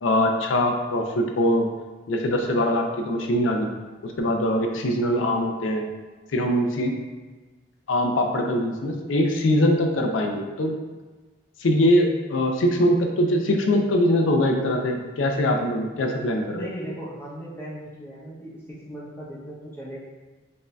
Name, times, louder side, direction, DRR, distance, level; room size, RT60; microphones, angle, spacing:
voice 1, 0.0-1.7 2.1-3.7 4.0-5.9 6.3-7.0 7.9-10.7 11.6-16.7, left 1 dB, 85° left, 3 dB, 0.5 m, -22 dB
voice 2, 16.5-20.0, equal, 10° left, -7 dB, 0.7 m, -37 dB
5.2 x 2.6 x 2.2 m, 1.3 s
head